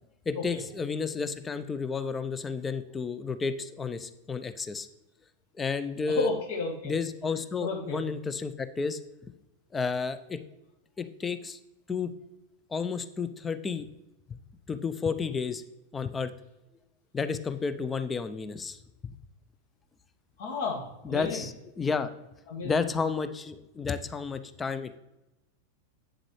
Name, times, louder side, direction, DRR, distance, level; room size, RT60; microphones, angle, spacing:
voice 1, 0.3-4.9 5.6-6.3 6.8-9.0 9.7-10.4 11.0-11.6 11.9-12.1 12.7-13.9 14.3-14.4 14.7-15.6 15.9-16.3 17.1-18.8 21.0-22.1 22.6-25.0, left 5 dB, 15° left, 12 dB, 0.5 m, -31 dB
voice 2, 6.1-6.9 7.6-8.0 20.4-21.4 22.5-22.8, left 4 dB, 55° left, 2 dB, 1.6 m, -32 dB
8.1 x 7.6 x 3.1 m, 0.95 s
figure-of-eight pair, 90°, 0 cm